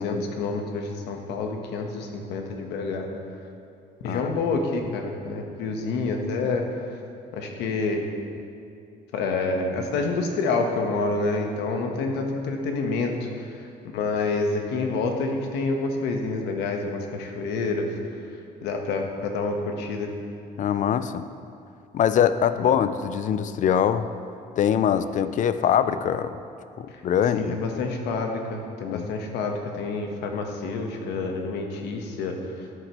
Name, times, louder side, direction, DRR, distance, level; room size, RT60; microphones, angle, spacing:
voice 1, 0.0-3.1 4.0-6.6 7.3-8.0 9.1-13.6 13.9-17.9 18.6-20.1 22.6-22.7 27.3-32.4, left 3 dB, 85° left, 3 dB, 1.2 m, -28 dB
voice 2, 20.6-21.3 21.9-24.1 24.6-26.4 26.8-27.8 28.8-29.1, left 9 dB, 50° left, 12 dB, 0.4 m, -23 dB
13.0 x 7.8 x 3.0 m, 2.4 s
cardioid pair, 110°, 17 cm